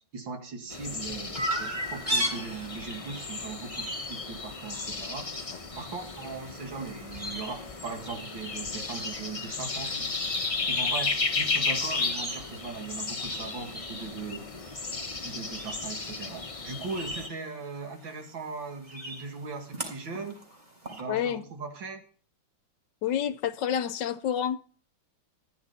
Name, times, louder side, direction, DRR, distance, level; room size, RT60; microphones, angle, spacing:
voice 1, 0.1-5.3 5.8-10.2 10.6-14.5 15.2-20.4 20.9-22.0, right 4 dB, 75° right, 2.8 m, -39 dB
sound 1, 0.7-17.3, left 4 dB, 25° left, 0.7 m, -34 dB
Chirp tweet, 1.4-21.0, equal, 20° right, 3.8 m, -39 dB
voice 2, 21.1-21.4 23.0-24.6, left 9 dB, 70° left, 1.3 m, -28 dB
14.5 x 10.5 x 4.1 m
omnidirectional pair, 2.1 m